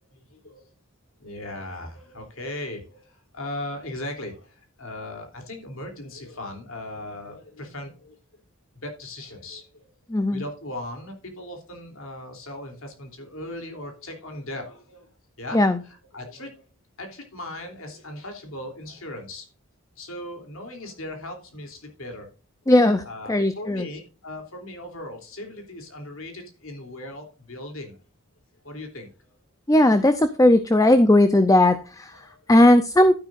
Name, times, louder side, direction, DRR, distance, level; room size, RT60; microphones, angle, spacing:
voice 1, 0.1-0.7 1.2-8.2 8.8-9.9 10.3-15.1 15.4-16.6 17.0-19.5 20.0-22.3 23.0-28.0 28.6-29.3 32.1-32.7, left 1 dB, 70° left, 4 dB, 3.1 m, -38 dB
voice 2, 10.1-10.4 15.5-15.8 22.7-23.0 23.3-23.9 29.7-32.1 32.5-33.2, left 1 dB, 15° left, 10 dB, 0.5 m, -17 dB
11.5 x 10.5 x 2.5 m, 0.36 s
head